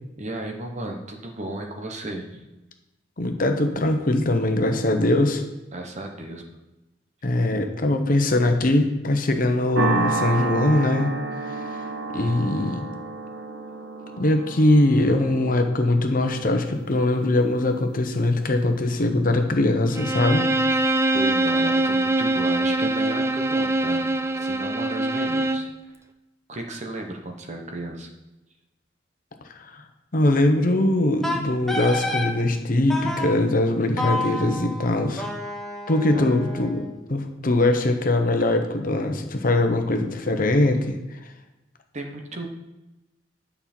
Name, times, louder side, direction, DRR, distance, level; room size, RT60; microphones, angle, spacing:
voice 1, 0.2-2.4 5.7-6.4 21.1-25.9 26.5-28.1 36.1-36.2 41.9-42.5, right 1 dB, 40° right, 3 dB, 1.1 m, -34 dB
voice 2, 3.2-5.4 7.2-11.1 12.1-12.9 14.2-20.5 29.7-29.8 30.1-35.2 35.9-41.0, left 1 dB, 50° left, 5 dB, 0.9 m, -21 dB
sound 1, 9.8-18.3, right 3 dB, 75° right, 1.2 m, -31 dB
Bowed string instrument, 19.9-25.7, right 2 dB, 15° right, 0.4 m, -23 dB
Wind instrument woodwind instrument, 31.2-32.3 32.9-33.3 34.0-37.0, left 1 dB, ahead, 1.0 m, -30 dB
9.6 x 5.6 x 4.4 m, 1.0 s
head